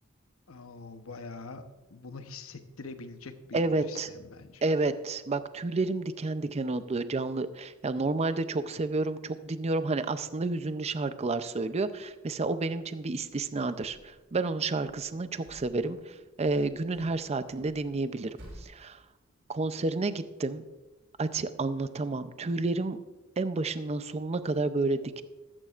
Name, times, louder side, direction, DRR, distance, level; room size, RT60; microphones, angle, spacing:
voice 1, 0.5-4.6, left 3 dB, 90° left, 8 dB, 0.9 m, -44 dB
voice 2, 3.5-4.1 4.6-19.0 19.5-20.6 21.2-23.0 23.4-25.2, right 3 dB, 30° right, 12 dB, 0.5 m, -30 dB
sound 1, 13.2-14.3 14.6-16.1 16.4-18.6, equal, 70° right, 4.1 m, -53 dB
13.5 x 13.5 x 2.5 m, 1.1 s
head